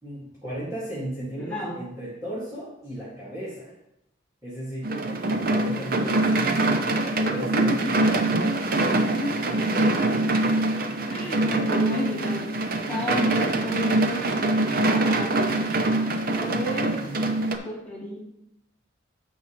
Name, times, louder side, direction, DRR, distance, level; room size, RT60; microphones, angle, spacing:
voice 1, 0.0-3.7 4.4-6.8 7.1-8.3, right 1 dB, 15° right, -9 dB, 2.2 m, -35 dB
voice 2, 1.4-1.8 6.3-6.8 7.5-8.4 9.2-10.3 11.1-14.2 14.8-15.7 16.3-17.0 17.4-18.2, equal, 5° left, -10 dB, 3.2 m, -32 dB
sound 1, 4.8-17.6, right 2 dB, 45° right, 0.7 m, -24 dB
9.4 x 7.2 x 3.2 m, 0.85 s
head